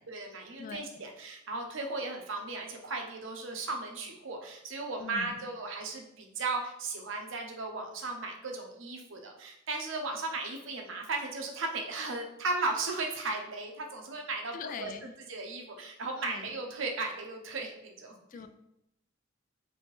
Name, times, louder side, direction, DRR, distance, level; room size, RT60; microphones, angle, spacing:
voice 1, 0.1-18.1, right 3 dB, 85° right, 2 dB, 0.7 m, -36 dB
voice 2, 0.6-1.0 5.0-5.5 14.5-15.1 16.2-16.6 18.3-18.5, left 5 dB, 45° left, 9 dB, 0.3 m, -43 dB
4.1 x 2.7 x 3.1 m, 0.82 s
head